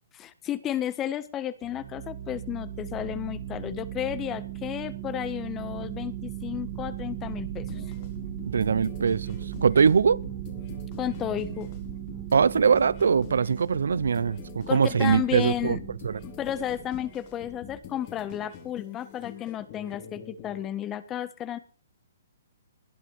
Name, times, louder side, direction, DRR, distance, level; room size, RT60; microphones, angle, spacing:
voice 1, 0.1-7.8 11.0-11.7 14.7-15.8 16.2-21.6, left 11 dB, 20° left, 1.4 m, -32 dB
sound 1, 1.6-17.9, right 12 dB, 35° right, 1.8 m, -38 dB
sound 2, 7.7-20.6, left 8 dB, 35° left, 4.2 m, -45 dB
voice 2, 8.5-10.2 12.3-15.8 16.0-16.1, right 6 dB, 75° right, 0.7 m, -22 dB
20.5 x 11.0 x 5.0 m
hypercardioid pair, 135°, 0 cm